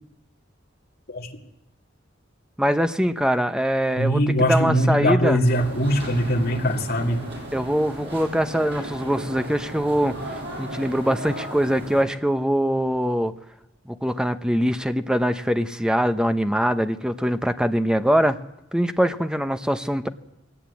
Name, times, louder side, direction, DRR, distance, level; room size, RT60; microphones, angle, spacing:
voice 1, 2.6-5.4 7.5-13.3 14.0-18.4 18.7-20.1, equal, 5° right, 9 dB, 0.9 m, -23 dB
voice 2, 4.0-7.2, equal, 55° left, 0 dB, 2.5 m, -21 dB
sound 1, 5.4-12.0, right 1 dB, 60° right, 7.0 m, -35 dB
21.5 x 18.0 x 8.5 m, 0.89 s
head